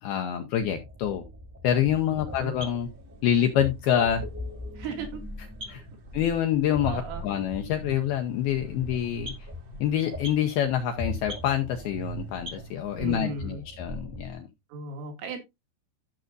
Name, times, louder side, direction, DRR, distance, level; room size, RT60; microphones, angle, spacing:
voice 1, 0.0-1.2 1.6-2.9 3.2-4.3 5.7-5.8 6.1-9.3 9.8-14.5, left 10 dB, 85° left, 5 dB, 2.2 m, -26 dB
sound 1, 0.6-14.3, left 1 dB, 10° right, 0.9 m, -41 dB
voice 2, 2.1-2.5 4.8-5.2 6.8-7.2 13.0-13.6 14.7-15.4, right 4 dB, 85° right, 3 dB, 4.6 m, -36 dB
sound 2, 2.3-13.3, right 2 dB, 55° right, 1.7 m, -45 dB
13.5 x 6.4 x 2.6 m, 0.21 s
omnidirectional pair, 5.4 m